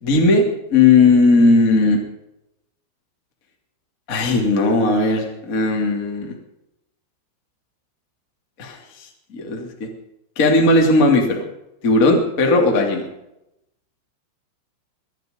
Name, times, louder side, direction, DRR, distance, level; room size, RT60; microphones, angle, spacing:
voice 1, 0.0-0.4 0.7-2.0 4.1-6.3 8.6-9.9 10.4-11.4 11.8-13.1, left 3 dB, 25° left, 1 dB, 2.2 m, -16 dB
22.5 x 10.5 x 5.3 m, 0.84 s
omnidirectional pair, 5.8 m